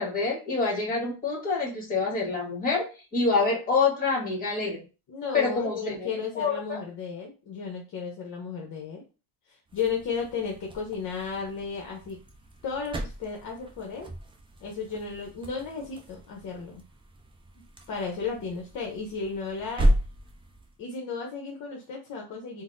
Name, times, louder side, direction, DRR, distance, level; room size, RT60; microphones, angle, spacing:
voice 1, 0.0-2.9 3.1-4.8 5.3-6.1 6.3-6.8, left 4 dB, 20° left, -2 dB, 1.4 m, -26 dB
voice 2, 5.1-9.0 9.5-12.2 12.6-14.1 14.6-16.8 17.6-19.9 20.8-22.6, left 5 dB, 50° left, 0 dB, 0.7 m, -34 dB
sound 1, 9.7-20.8, equal, 15° right, 0.3 m, -34 dB
3.9 x 2.0 x 2.5 m, 0.33 s
cardioid pair, 130°, 40 cm